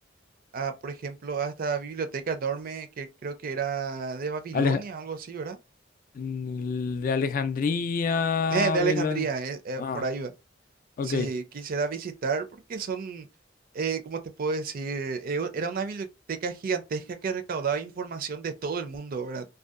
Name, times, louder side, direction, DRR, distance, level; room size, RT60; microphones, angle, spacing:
voice 1, 0.5-5.6 8.5-10.3 11.0-13.3 13.7-19.5, right 5 dB, 50° right, 0.4 m, -31 dB
voice 2, 6.2-9.2 9.8-10.0 11.0-11.3, left 5 dB, 45° left, 0.3 m, -27 dB
2.6 x 2.2 x 2.4 m
head